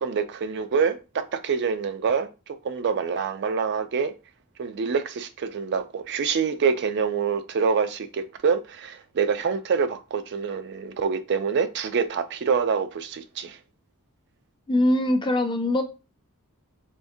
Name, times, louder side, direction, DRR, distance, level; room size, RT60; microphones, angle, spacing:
voice 1, 0.0-2.3 2.6-4.1 4.6-13.6, right 6 dB, 50° right, 0.4 m, -26 dB
voice 2, 14.7-15.8, left 1 dB, 20° left, 0.5 m, -22 dB
3.5 x 3.4 x 2.6 m
head